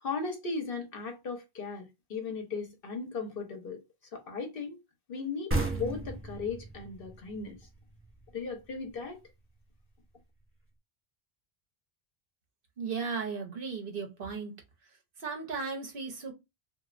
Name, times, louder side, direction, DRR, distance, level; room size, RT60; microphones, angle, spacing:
voice 1, 0.0-3.8 4.1-4.8 5.1-7.6 8.3-9.2, left 4 dB, 65° left, 0.9 m, -37 dB
sound 1, 5.5-8.9, right 2 dB, 20° right, 0.3 m, -35 dB
voice 2, 12.8-14.5 15.2-16.3, right 5 dB, 65° right, 1.0 m, -35 dB
3.0 x 2.4 x 2.4 m
omnidirectional pair, 1.0 m